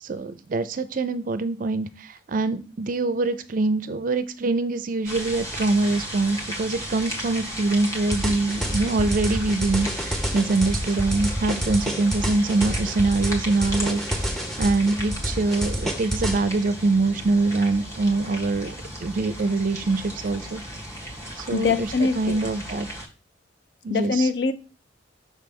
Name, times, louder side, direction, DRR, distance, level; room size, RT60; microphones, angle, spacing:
voice 1, 0.0-18.7 19.0-20.6 21.4-22.9 23.8-24.3, right 3 dB, 45° right, 0.4 m, -24 dB
sound 1, 5.0-23.1, equal, 15° left, 1.5 m, -35 dB
sound 2, 8.1-16.4, equal, ahead, 0.7 m, -28 dB
voice 2, 21.5-22.5 23.9-24.5, left 4 dB, 65° left, 0.5 m, -23 dB
6.3 x 3.3 x 5.2 m
head